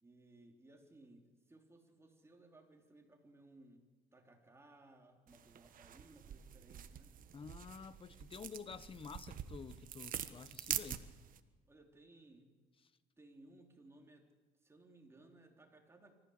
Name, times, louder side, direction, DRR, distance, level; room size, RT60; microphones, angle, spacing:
voice 1, 0.0-3.8 4.1-7.1 11.7-12.5 13.2-14.3 14.6-16.1, right 2 dB, 15° right, 3.5 m, -61 dB
sound 1, 5.3-11.4, right 10 dB, 55° right, 1.3 m, -45 dB
voice 2, 7.3-11.1, left 6 dB, 30° left, 1.0 m, -50 dB
24.5 x 15.0 x 8.0 m
cardioid pair, 110°, 17 cm